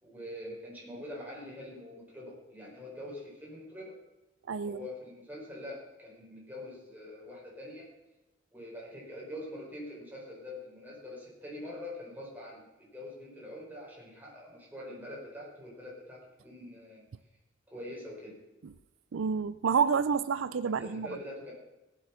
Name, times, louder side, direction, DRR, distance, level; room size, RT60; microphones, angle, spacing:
voice 1, 0.0-4.0 4.6-7.9 8.5-17.0 17.7-18.3 20.8-21.5, left 1 dB, 10° right, -4 dB, 4.6 m, -44 dB
voice 2, 4.5-4.8 18.6-18.7 19.1-21.1, right 6 dB, 75° right, 14 dB, 0.4 m, -29 dB
18.0 x 7.7 x 5.7 m, 1.0 s
head